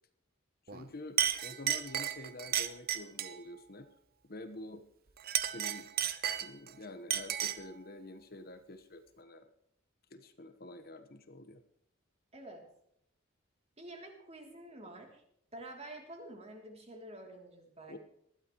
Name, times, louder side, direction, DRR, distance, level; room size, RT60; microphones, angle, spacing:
voice 1, 0.7-3.9 4.2-4.8 5.4-5.9 6.4-9.5 10.1-11.6 17.9-18.0, left 2 dB, 45° left, 9 dB, 1.2 m, -48 dB
Chink clink, 0.7-0.9 1.2-3.4 5.2-6.7 7.1-7.7, right 10 dB, 45° right, 0.8 m, -33 dB
voice 2, 12.3-12.7 13.8-15.2 15.5-18.0, right 1 dB, 30° right, 2 dB, 3.0 m, -48 dB
20.0 x 12.5 x 3.1 m, 0.72 s
head